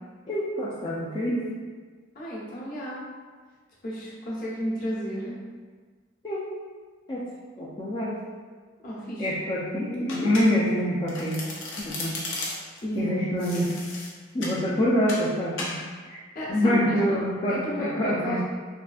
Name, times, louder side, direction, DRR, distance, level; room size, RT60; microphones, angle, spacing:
voice 1, 0.3-1.5 6.2-6.5 7.1-7.2 7.6-8.2 9.2-11.5 11.8-12.2 13.0-13.8 14.3-15.8 16.1-16.2 16.5-18.4, equal, 25° left, -8 dB, 0.4 m, -26 dB
voice 2, 2.1-3.0 3.8-5.4 8.8-9.3 12.8-13.2 13.5-13.7 16.3-18.4, equal, 50° left, -7 dB, 0.9 m, -33 dB
Domestic sounds home sounds, 10.1-10.8 11.1-12.8 13.4-14.6 15.1-15.3 15.6-15.8, left 2 dB, 85° left, 0.7 m, -35 dB
3.6 x 2.5 x 2.3 m, 1.5 s
head